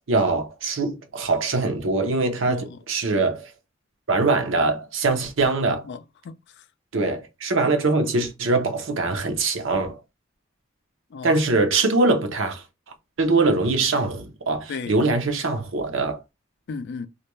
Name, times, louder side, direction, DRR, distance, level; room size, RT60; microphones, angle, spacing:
voice 1, 0.1-3.5 4.1-5.8 6.9-10.0 11.2-12.6 13.2-16.2, right 3 dB, 70° right, 0.7 m, -22 dB
voice 2, 2.5-2.8 5.8-6.6 11.1-11.4 14.7-15.1 16.7-17.1, left 5 dB, 60° left, 0.4 m, -35 dB
2.4 x 2.2 x 3.0 m
head